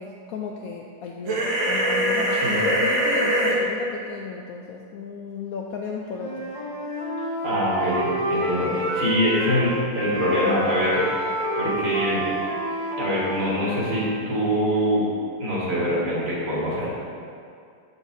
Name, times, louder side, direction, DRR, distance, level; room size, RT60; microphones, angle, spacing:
voice 1, 0.0-6.5, left 5 dB, 75° left, -1 dB, 0.8 m, -34 dB
sound 1, 1.3-3.5, right 1 dB, 90° right, 1.9 m, -22 dB
voice 2, 2.3-2.6 7.4-12.3 13.0-15.0 15.4-16.9, equal, 70° right, -7 dB, 2.5 m, -24 dB
Wind instrument woodwind instrument, 6.1-9.6 9.9-14.2, equal, 25° left, 1.7 m, -28 dB
8.0 x 7.1 x 2.7 m, 2.3 s
omnidirectional pair, 2.0 m